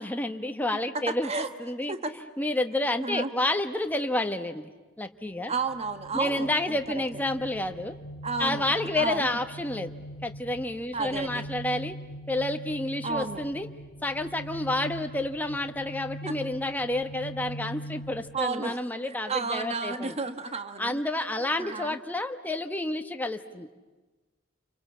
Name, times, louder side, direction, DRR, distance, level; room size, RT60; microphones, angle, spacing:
voice 1, 0.0-1.9 2.4-4.7 5.0-5.5 6.1-7.9 8.4-9.9 10.2-12.0 12.3-13.7 14.0-20.2 20.8-23.7, left 1 dB, 10° left, 6 dB, 1.2 m, -30 dB
voice 2, 1.1-1.5 1.9-2.1 3.0-3.3 5.5-6.8 8.2-8.7 8.9-9.3 10.9-11.4 13.0-13.4 16.2-16.3 18.3-18.8 19.1-21.0 21.6-22.0, right 4 dB, 30° right, 9 dB, 1.3 m, -32 dB
sound 1, 5.6-18.4, equal, 75° left, 2.2 m, -42 dB
29.0 x 24.0 x 8.5 m, 1.2 s
head